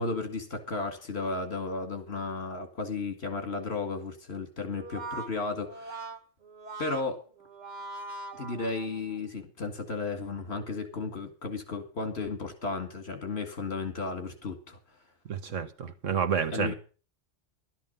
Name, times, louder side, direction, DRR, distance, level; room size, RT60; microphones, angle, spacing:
voice 1, 0.0-6.0 6.8-7.2 8.3-14.8 16.5-16.7, left 3 dB, 55° left, 2.5 m, -34 dB
Brass instrument, 4.7-9.2, right 3 dB, 40° right, 1.1 m, -41 dB
voice 2, 15.3-16.7, right 7 dB, 80° right, 1.5 m, -29 dB
12.5 x 10.5 x 5.5 m
omnidirectional pair, 1.3 m